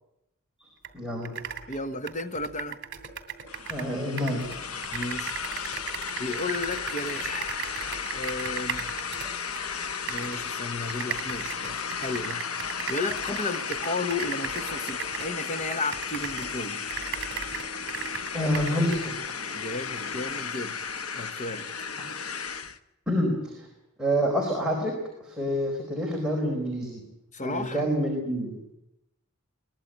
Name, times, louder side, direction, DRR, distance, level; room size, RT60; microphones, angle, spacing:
sound 1, 0.8-0.9 1.2-3.9 4.2-9.6 10.1-10.4 10.9-16.6 16.9-19.1, right 8 dB, 55° right, 2.7 m, -37 dB
voice 1, 0.9-1.3 3.7-4.4 18.3-19.2 23.1-23.7 24.0-24.9 25.2-27.0 27.4-28.5, equal, 5° right, 4.5 m, -27 dB
voice 2, 1.7-2.8 4.9-5.4 6.2-8.9 10.1-12.4 12.9-16.8 19.5-20.8 21.1-21.7 27.3-27.8, left 2 dB, 35° left, 1.2 m, -33 dB
sound 2, 3.5-22.8, left 6 dB, 75° left, 1.2 m, -34 dB
22.5 x 20.5 x 8.8 m
head